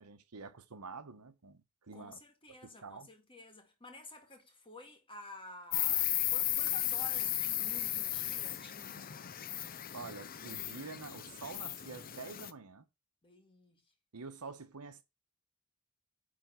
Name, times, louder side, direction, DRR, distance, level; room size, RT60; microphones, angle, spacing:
voice 1, 0.0-2.2 2.8-3.1 9.9-12.9 14.1-15.0, right 4 dB, 85° right, 1.1 m, -47 dB
voice 2, 1.9-9.1 13.2-13.9, left 2 dB, 25° left, 1.8 m, -52 dB
Insect, 5.7-12.5, left 12 dB, 40° left, 0.6 m, -35 dB
9.9 x 3.6 x 5.6 m
head